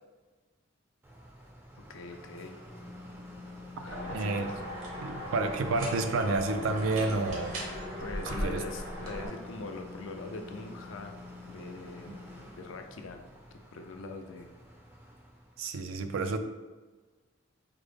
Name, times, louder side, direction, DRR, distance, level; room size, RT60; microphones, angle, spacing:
sound 1, 1.0-15.7, left 2 dB, 10° right, 0.4 m, -48 dB
voice 1, 1.8-2.6 3.8-4.6 8.0-11.1 11.5-12.2 12.5-13.2 13.5-14.5, left 3 dB, 70° left, 5 dB, 0.4 m, -43 dB
sound 2, 3.9-9.3, equal, 65° right, 0.9 m, -38 dB
voice 2, 4.1-4.5 5.0-7.6 8.3-8.6 15.6-16.4, right 3 dB, 80° right, 8 dB, 0.4 m, -30 dB
4.9 x 2.0 x 3.3 m, 1.3 s
head